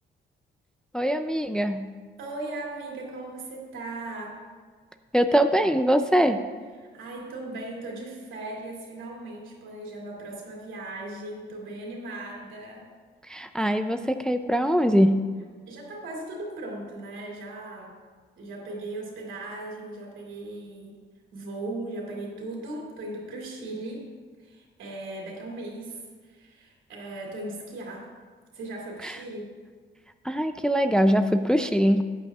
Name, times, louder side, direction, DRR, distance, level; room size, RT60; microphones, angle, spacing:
voice 1, 0.9-1.8 5.1-6.4 13.3-15.2 30.3-32.0, equal, 5° left, 8 dB, 0.4 m, -22 dB
voice 2, 2.2-4.4 6.7-12.9 15.7-17.9 18.4-21.0 21.3-24.1 24.4-28.1 28.5-29.5, right 2 dB, 75° right, -2 dB, 2.7 m, -38 dB
14.0 x 9.0 x 2.4 m, 1.5 s
cardioid pair, 90°, 20 cm